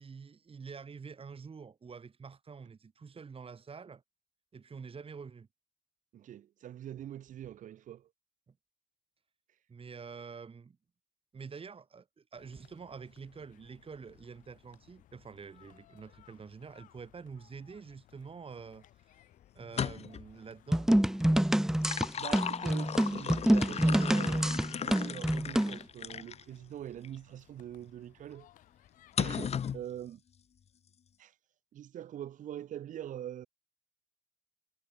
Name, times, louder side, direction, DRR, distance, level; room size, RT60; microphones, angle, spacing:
voice 1, 0.0-4.0 4.5-5.5 9.7-10.8 11.3-19.2 19.5-20.9, right 5 dB, 45° right, 3.5 m, -47 dB
voice 2, 6.1-8.1 22.1-28.5 29.2-30.2 31.2-31.3 31.7-33.5, right 11 dB, 75° right, 4.9 m, -43 dB
sound 1, 12.4-29.8, left 14 dB, 85° left, 4.5 m, -62 dB
sound 2, 19.6-20.3 21.6-26.4 27.0-27.2 29.2-29.8, left 8 dB, 55° left, 0.8 m, -36 dB
sound 3, 20.7-25.8, right 1 dB, 5° right, 0.6 m, -27 dB
supercardioid pair, 60°, 13 cm